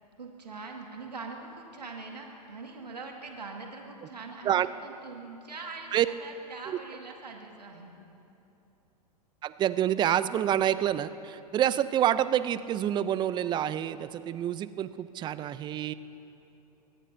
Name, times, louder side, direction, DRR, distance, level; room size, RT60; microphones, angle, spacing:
voice 1, 0.2-7.9, right 4 dB, 85° right, 1 dB, 1.8 m, -43 dB
voice 2, 9.4-15.9, right 11 dB, 20° right, 15 dB, 0.4 m, -27 dB
23.5 x 19.0 x 2.6 m, 2.9 s
hypercardioid pair, 105°, 21 cm